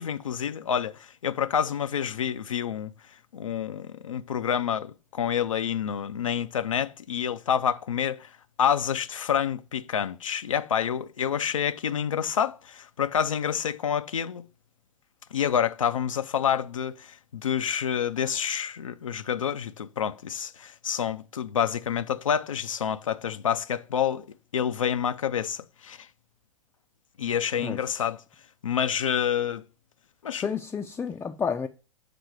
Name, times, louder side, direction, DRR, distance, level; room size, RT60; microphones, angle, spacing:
voice 1, 0.0-2.9 3.3-8.3 8.6-14.5 15.3-24.3 24.5-26.1 27.2-28.2 28.6-29.6 30.2-30.5, left 8 dB, 80° left, 0.4 m, -28 dB
voice 2, 27.5-28.0 30.3-31.7, left 6 dB, 10° left, 0.4 m, -31 dB
6.8 x 3.7 x 4.6 m
figure-of-eight pair, 95°, 17 cm